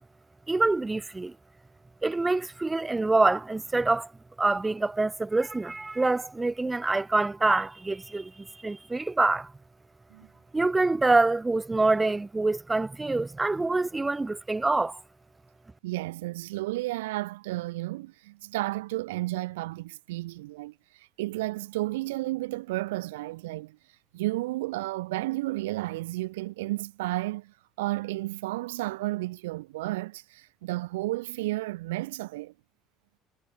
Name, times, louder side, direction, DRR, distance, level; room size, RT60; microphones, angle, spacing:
voice 1, 0.5-1.3 2.0-4.1 4.4-9.5 10.5-15.0, right 3 dB, 15° right, 1.1 m, -26 dB
voice 2, 15.8-23.8 24.1-32.5, right 19 dB, 75° right, 0.5 m, -32 dB
hypercardioid pair, 65°, 0 cm